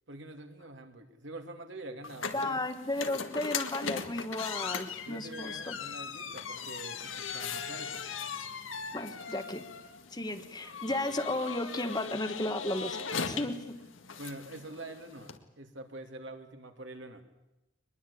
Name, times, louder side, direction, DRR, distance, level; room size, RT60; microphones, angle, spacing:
voice 1, 0.1-2.6 3.0-3.1 5.1-8.0 13.2-13.5 14.2-17.2, right 2 dB, 65° right, 5 dB, 2.7 m, -45 dB
sound 1, 2.0-15.4, left 6 dB, 85° left, 1.8 m, -39 dB
voice 2, 2.3-5.7 8.9-9.6 10.1-13.8, left 2 dB, 20° left, 8 dB, 1.4 m, -34 dB
22.5 x 21.5 x 8.6 m, 0.97 s
head